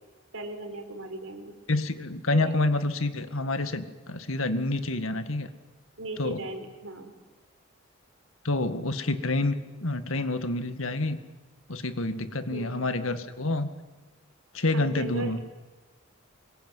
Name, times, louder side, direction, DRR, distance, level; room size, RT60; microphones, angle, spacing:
voice 1, 0.3-1.6 2.3-2.5 6.0-7.1 12.5-12.8 14.7-15.4, right 2 dB, 85° right, 7 dB, 4.2 m, -37 dB
voice 2, 1.7-5.5 6.2-6.4 8.4-11.2 11.7-13.7 14.5-15.4, left 2 dB, 85° left, 10 dB, 2.0 m, -28 dB
25.0 x 22.0 x 9.6 m, 1.2 s
head